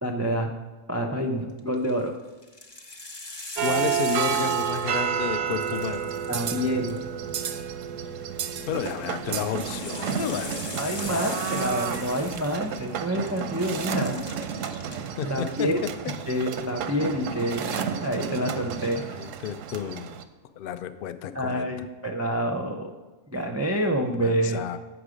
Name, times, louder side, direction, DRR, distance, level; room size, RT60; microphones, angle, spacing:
voice 1, 0.0-0.5 0.9-2.1 6.3-7.0 10.7-14.2 15.2-15.8 16.3-19.0 21.3-22.9 23.3-24.6, equal, 25° right, 2 dB, 0.3 m, -27 dB
sound 1, 1.6-1.9 2.4-5.2 5.5-7.3 8.5-13.0 13.3-15.0 15.3-15.8, left 2 dB, 25° left, 0.7 m, -40 dB
voice 2, 3.6-6.1 8.7-10.8 11.1-12.4 15.0-15.7 16.0-16.1 19.1-20.2 20.6-21.9 24.1-24.8, left 10 dB, 60° left, 11 dB, 0.6 m, -32 dB
sound 2, 3.6-20.2, right 8 dB, 90° right, 1.0 m, -31 dB
8.0 x 6.0 x 5.0 m, 1.2 s
omnidirectional pair, 1.3 m